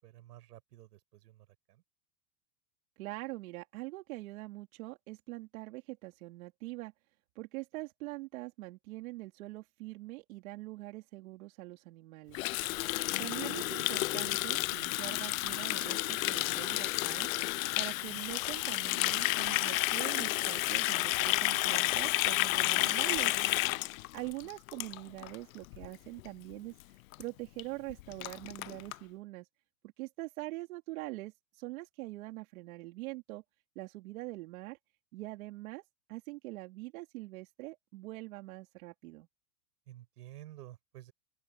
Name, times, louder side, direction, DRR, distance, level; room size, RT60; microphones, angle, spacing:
voice 1, 0.0-1.8 12.6-13.0 39.9-41.1, right 14 dB, 80° right, 7.9 m, -52 dB
voice 2, 3.0-6.9 7.3-12.4 13.2-23.4 23.7-29.5 30.0-33.4 33.7-34.8 35.1-35.8 36.1-39.3, right 20 dB, 60° right, 3.4 m, -43 dB
Water tap faucet, 12.3-25.4 25.6-25.9 26.2-26.5 26.8-26.9 27.1-27.2 27.6-27.7 27.9-29.0, left 19 dB, 60° left, 0.7 m, -31 dB
open air
supercardioid pair, 170°, 47 cm